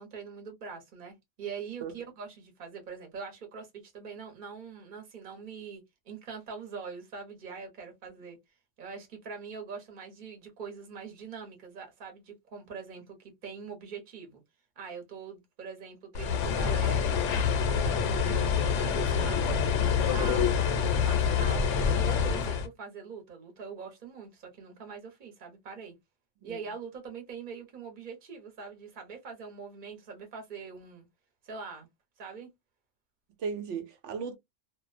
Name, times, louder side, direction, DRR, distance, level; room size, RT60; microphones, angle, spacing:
voice 1, 0.0-8.4 8.8-14.4 14.8-17.0 17.6-21.6 21.9-26.0 26.4-31.1 31.4-31.9 32.2-32.5, right 5 dB, 45° right, 1.0 m, -43 dB
sound 1, 16.1-22.7, left 6 dB, 80° left, 0.9 m, -26 dB
voice 2, 18.0-18.5 26.4-26.6 33.4-34.4, right 5 dB, 70° right, 1.0 m, -37 dB
2.4 x 2.2 x 2.3 m
omnidirectional pair, 1.3 m